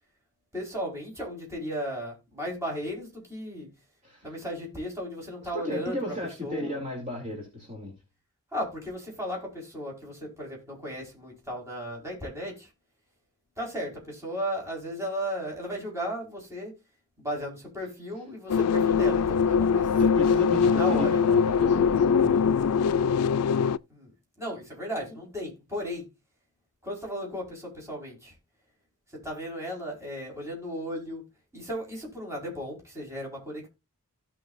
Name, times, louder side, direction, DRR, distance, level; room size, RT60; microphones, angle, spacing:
voice 1, 0.5-3.7 4.2-6.2 6.4-6.8 8.5-12.7 13.6-16.7 17.2-20.1 20.8-21.2 23.9-24.1 24.4-26.1 26.8-28.4 29.1-31.2 31.5-33.7, equal, 15° right, 4.4 m, -35 dB
voice 2, 5.5-7.9 19.8-22.4, left 1 dB, 35° right, 2.7 m, -35 dB
sound 1, 18.5-23.8, left 6 dB, 80° left, 0.4 m, -22 dB
16.5 x 5.8 x 2.5 m
head